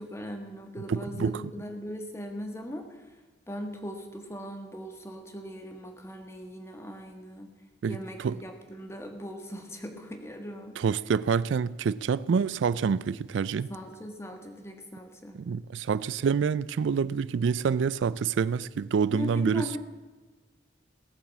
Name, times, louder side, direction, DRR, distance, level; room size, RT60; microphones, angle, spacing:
voice 1, 0.0-2.8 3.5-7.5 7.9-10.7 13.7-15.4 19.1-19.8, equal, 15° left, 1.5 m, -39 dB
voice 2, 0.9-1.4 7.8-8.4 10.8-13.7 15.3-19.8, right 6 dB, 80° right, 0.4 m, -27 dB
17.0 x 8.8 x 7.2 m
head